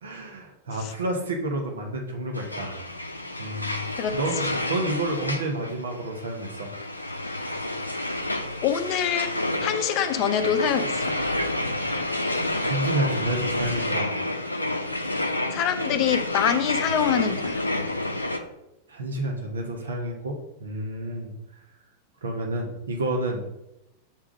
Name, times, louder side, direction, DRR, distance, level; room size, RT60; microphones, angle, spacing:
voice 1, 0.0-2.8 3.4-6.7 12.6-14.1 18.9-21.3 22.2-23.4, right 1 dB, 70° right, 2 dB, 1.1 m, -30 dB
sound 1, 2.3-18.4, left 1 dB, 85° left, 0.6 m, -29 dB
voice 2, 8.6-11.2 15.5-17.6, left 9 dB, 40° left, 9 dB, 0.6 m, -25 dB
7.4 x 3.6 x 5.1 m, 0.87 s
figure-of-eight pair, 90°, 0 cm